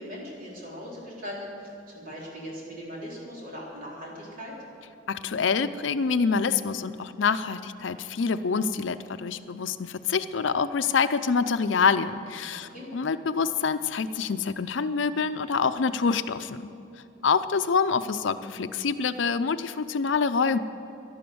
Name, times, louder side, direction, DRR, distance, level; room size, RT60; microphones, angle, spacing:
voice 1, 0.0-4.6 12.5-12.9, equal, 45° right, -4 dB, 4.0 m, -39 dB
voice 2, 5.1-16.7 17.2-20.6, left 5 dB, 75° left, 11 dB, 0.5 m, -26 dB
12.0 x 11.5 x 7.9 m, 2.8 s
head